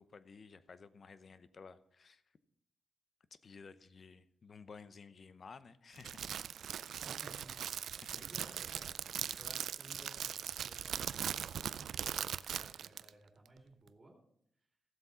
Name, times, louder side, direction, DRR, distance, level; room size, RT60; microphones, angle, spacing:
voice 1, 0.0-2.2 3.4-6.2 8.0-8.2, left 5 dB, 45° left, 14 dB, 0.8 m, -54 dB
Crackle, 6.0-13.1, right 9 dB, 80° right, 0.4 m, -40 dB
voice 2, 7.0-14.2 14.6-14.7, right 2 dB, 25° right, 0 dB, 2.5 m, -58 dB
15.5 x 7.8 x 5.7 m, 0.72 s
wide cardioid pair, 125°, 0 cm